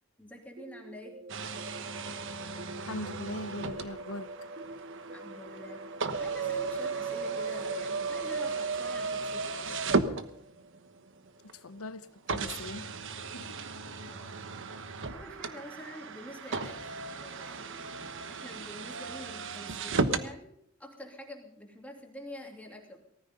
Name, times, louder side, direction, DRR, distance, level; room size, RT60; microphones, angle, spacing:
voice 1, 0.2-1.2 5.1-9.8 14.0-14.4 15.1-17.7 18.3-20.5 20.8-23.0, left 1 dB, 5° left, 2.9 m, -47 dB
sound 1, 0.6-12.3, right 2 dB, 40° right, 0.6 m, -47 dB
sound 2, 1.3-10.8 11.5-11.6 12.3-20.3, right 4 dB, 60° right, 1.2 m, -35 dB
voice 2, 2.9-4.3 11.5-12.9 13.3-13.6, left 2 dB, 90° left, 1.1 m, -40 dB
19.5 x 13.5 x 5.4 m
head